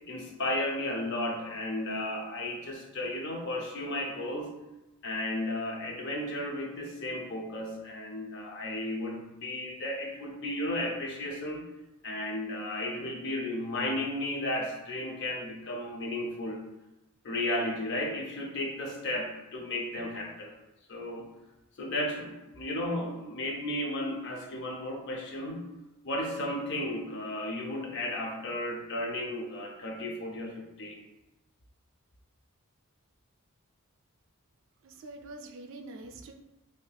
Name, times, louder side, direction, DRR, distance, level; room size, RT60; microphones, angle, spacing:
voice 1, 0.1-4.5 5.0-11.6 12.0-16.6 17.2-20.5 20.9-21.3 21.8-25.6 26.0-31.0, left 1 dB, 55° left, 1 dB, 0.5 m, -34 dB
voice 2, 34.8-36.3, right 2 dB, 60° right, 3 dB, 0.3 m, -45 dB
3.3 x 2.7 x 2.3 m, 1.0 s
head